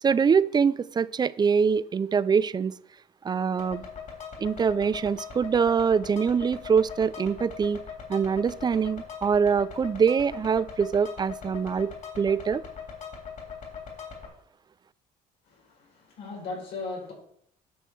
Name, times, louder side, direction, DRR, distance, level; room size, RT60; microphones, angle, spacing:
voice 1, 0.0-2.7 3.2-3.8 4.4-7.8 8.1-12.6, right 6 dB, 25° right, 18 dB, 0.4 m, -24 dB
sound 1, 3.6-14.3, left 6 dB, 50° left, 3.2 m, -41 dB
voice 2, 15.4-17.1, left 3 dB, 90° left, -1 dB, 4.2 m, -37 dB
10.0 x 6.2 x 4.6 m, 0.66 s
cardioid pair, 110°, 17 cm